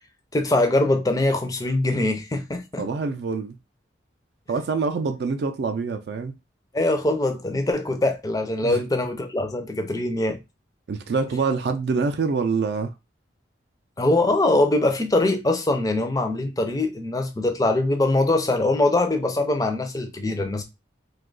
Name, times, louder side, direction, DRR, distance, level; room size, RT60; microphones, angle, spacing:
voice 1, 0.3-2.8 6.7-10.4 14.0-20.6, left 2 dB, 20° left, 0.4 m, -22 dB
voice 2, 2.8-3.6 4.5-6.3 8.6-8.8 10.9-12.9, right 4 dB, 55° right, 0.3 m, -25 dB
2.8 x 2.3 x 3.8 m
head